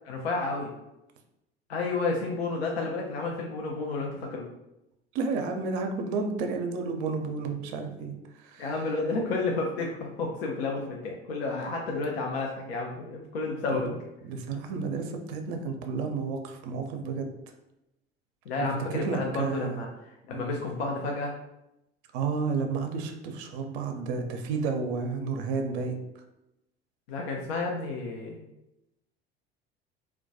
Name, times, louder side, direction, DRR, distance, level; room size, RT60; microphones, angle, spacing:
voice 1, 0.0-0.7 1.7-4.4 8.6-13.9 18.5-21.3 27.1-28.4, left 3 dB, 75° left, 0 dB, 0.5 m, -31 dB
voice 2, 5.1-8.7 13.7-13.9 14.2-17.3 18.6-19.8 20.3-20.5 22.1-26.0, right 4 dB, 60° right, 5 dB, 0.5 m, -31 dB
2.2 x 2.2 x 2.6 m, 0.89 s
figure-of-eight pair, 70°, 31 cm